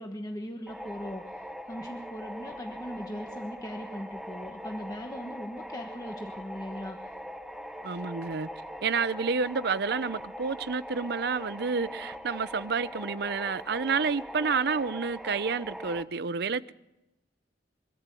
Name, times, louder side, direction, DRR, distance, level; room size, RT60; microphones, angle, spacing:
voice 1, 0.0-1.3 1.6-7.1, equal, 20° left, 1.2 m, -39 dB
sound 1, 0.7-16.0, equal, ahead, 0.7 m, -41 dB
voice 2, 7.8-8.5 8.8-16.7, right 5 dB, 60° right, 0.6 m, -29 dB
23.5 x 14.0 x 8.3 m
head